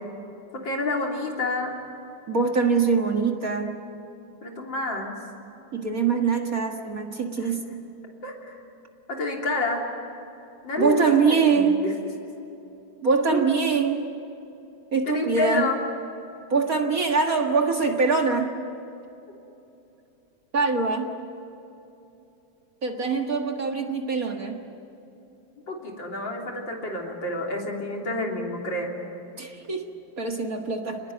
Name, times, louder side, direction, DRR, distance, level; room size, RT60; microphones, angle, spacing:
voice 1, 0.6-1.8 4.4-5.2 7.3-7.5 8.2-8.6 9.1-9.8 10.6-11.9 13.3-13.4 15.1-15.8 25.7-29.1, left 2 dB, 60° left, 0 dB, 4.2 m, -29 dB
voice 2, 2.3-3.8 5.7-7.6 10.8-11.8 13.0-14.1 14.9-15.7 16.5-18.6 20.5-21.2 22.8-24.6 29.4-29.9 30.2-31.0, right 5 dB, 45° right, 3 dB, 2.0 m, -23 dB
28.5 x 20.5 x 9.3 m, 2.8 s
omnidirectional pair, 2.3 m